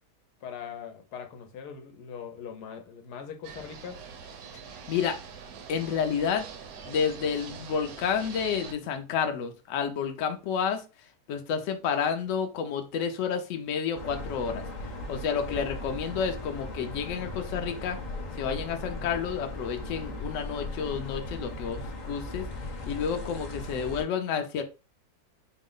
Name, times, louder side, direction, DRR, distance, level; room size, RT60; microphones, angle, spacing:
voice 1, 0.4-4.0 15.3-15.7, left 7 dB, 85° left, 1.3 m, -41 dB
sound 1, 3.4-8.7, right 6 dB, 70° right, 1.1 m, -44 dB
voice 2, 5.7-6.5 6.8-10.8 11.3-14.6 15.1-18.0 18.4-22.4 22.9-24.6, left 7 dB, 65° left, 0.9 m, -30 dB
sound 2, 13.9-24.0, left 2 dB, 45° left, 0.5 m, -38 dB
4.4 x 2.1 x 3.7 m
omnidirectional pair, 1.7 m